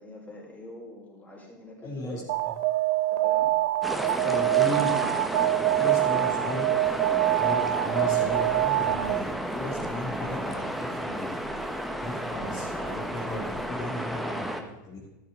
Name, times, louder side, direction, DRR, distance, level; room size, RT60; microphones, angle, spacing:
voice 1, 0.0-2.3 3.1-3.5 4.0-4.5, left 1 dB, 15° left, -2 dB, 5.0 m, -44 dB
voice 2, 1.8-2.2 4.2-4.9 5.8-6.6 7.4-11.3 12.0-15.0, left 1 dB, 35° left, -4 dB, 2.9 m, -35 dB
Alarm, 2.3-9.4, right 16 dB, 65° right, 0.7 m, -25 dB
sound 1, 3.8-14.6, equal, ahead, 1.3 m, -32 dB
sound 2, 6.8-13.7, right 3 dB, 35° right, 1.5 m, -50 dB
13.0 x 11.5 x 3.9 m, 0.95 s
hypercardioid pair, 115°, 10 cm